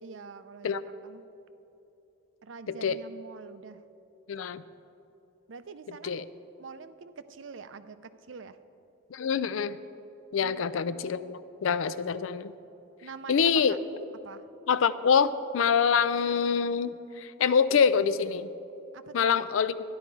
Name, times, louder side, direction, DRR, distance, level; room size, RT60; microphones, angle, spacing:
voice 1, 0.0-1.2 2.4-3.8 5.5-6.3 6.6-8.6 10.4-11.3 13.0-13.8 14.2-14.4 18.9-19.4, right 5 dB, 70° right, 12 dB, 0.5 m, -45 dB
voice 2, 2.7-3.0 4.3-4.6 6.0-6.2 9.1-9.8 10.3-12.5 13.3-13.8 14.7-18.5 19.1-19.8, left 6 dB, 85° left, 15 dB, 0.4 m, -25 dB
12.0 x 11.0 x 4.6 m, 3.0 s
head